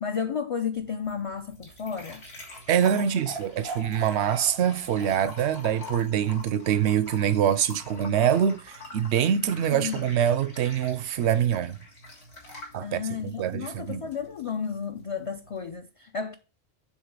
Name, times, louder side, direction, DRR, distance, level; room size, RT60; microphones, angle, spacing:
voice 1, 0.0-2.2 3.0-3.2 9.7-10.1 12.5-16.4, left 6 dB, 50° left, 0.4 m, -33 dB
sound 1, 0.8-15.7, left 1 dB, 80° left, 2.1 m, -44 dB
voice 2, 2.7-11.8 12.7-14.1, right 9 dB, 85° right, 0.9 m, -25 dB
7.4 x 3.6 x 4.7 m
omnidirectional pair, 1.1 m